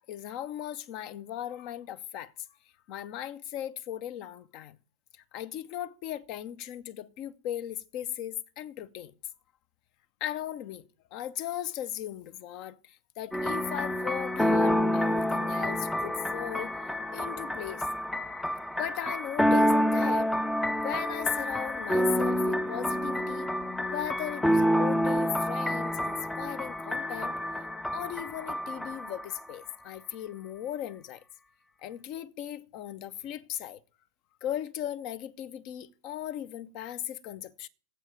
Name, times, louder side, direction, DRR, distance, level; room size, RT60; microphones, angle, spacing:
voice 1, 0.1-2.3 2.9-4.8 5.3-9.1 10.2-10.8 11.1-16.7 17.1-17.9 18.8-20.3 20.8-23.5 23.9-27.3 27.9-31.2 31.8-33.8 34.4-37.7, left 11 dB, 40° left, 0.9 m, -37 dB
sound 1, 13.3-29.4, equal, 5° left, 0.7 m, -28 dB
9.1 x 8.2 x 9.0 m
figure-of-eight pair, 90°, 0 cm